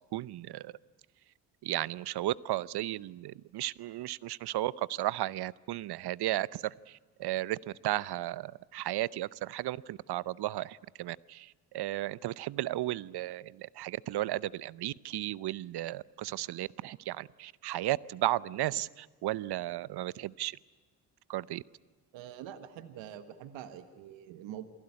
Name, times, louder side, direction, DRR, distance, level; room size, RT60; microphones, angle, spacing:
voice 1, 0.1-0.7 1.6-6.7 7.2-11.5 11.7-20.5 21.3-21.6, right 15 dB, 60° right, 20 dB, 0.8 m, -34 dB
voice 2, 22.1-24.7, right 10 dB, 75° right, 10 dB, 1.6 m, -45 dB
28.0 x 19.0 x 9.7 m, 1.4 s
hypercardioid pair, 50°, 45 cm